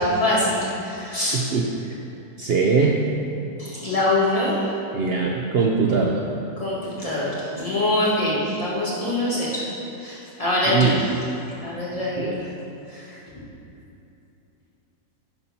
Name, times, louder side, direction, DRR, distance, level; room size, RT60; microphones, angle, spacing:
voice 1, 0.0-1.4 3.6-4.5 6.6-9.6 10.0-11.0 11.6-12.3 12.9-13.1, left 1 dB, 20° left, -8 dB, 1.9 m, -24 dB
voice 2, 1.3-1.9 2.4-3.0 4.9-6.2 10.7-11.0 12.2-12.5, right 4 dB, 80° right, 0 dB, 0.5 m, -22 dB
10.5 x 4.4 x 5.5 m, 2.8 s
omnidirectional pair, 1.7 m